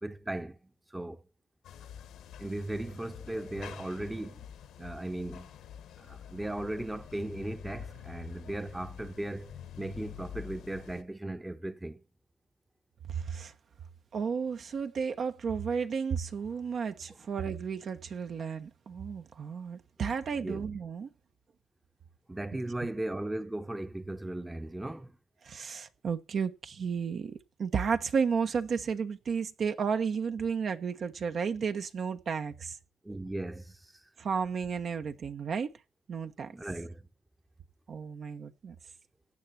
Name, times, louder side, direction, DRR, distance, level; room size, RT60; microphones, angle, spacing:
voice 1, 0.0-1.2 2.4-4.5 4.8-5.5 6.0-12.0 20.3-20.6 22.3-25.2 33.0-34.0 36.5-37.1, right 1 dB, 10° right, 1.0 m, -37 dB
sound 1, 1.6-11.0, left 9 dB, 80° left, 1.8 m, -47 dB
voice 2, 13.1-13.5 14.1-21.1 25.4-32.8 34.2-35.7 36.1-36.5 37.9-38.7, right 6 dB, 55° right, 1.2 m, -33 dB
16.0 x 9.3 x 4.3 m
cardioid pair, 90°, 0 cm